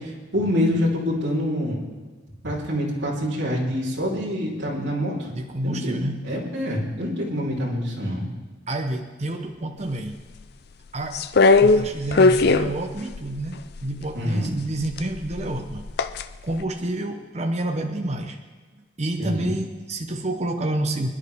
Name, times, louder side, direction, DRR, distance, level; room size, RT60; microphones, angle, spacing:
voice 1, 0.0-1.8 2.4-5.3 5.6-8.3 14.1-14.5 19.2-19.5, equal, 60° right, -7 dB, 3.9 m, -26 dB
voice 2, 5.3-6.3 8.7-10.3 10.9-11.2 11.6-15.8 16.4-18.4 19.0-21.1, right 1 dB, 35° right, 4 dB, 0.8 m, -29 dB
sound 1, 11.1-13.9 14.8-16.3 16.6-16.7, left 3 dB, 55° left, 0.5 m, -18 dB
25.5 x 11.0 x 3.6 m, 1.4 s
head